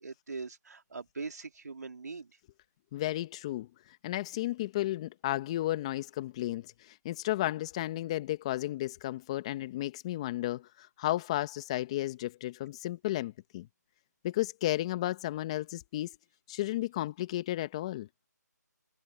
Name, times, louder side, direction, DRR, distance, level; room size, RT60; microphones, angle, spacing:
voice 1, 0.0-2.3, right 4 dB, 65° right, 2.6 m, -41 dB
voice 2, 2.9-3.7 4.0-13.7 14.2-16.2 16.5-18.1, left 15 dB, 20° left, 1.5 m, -33 dB
figure-of-eight pair, 165°, 10 cm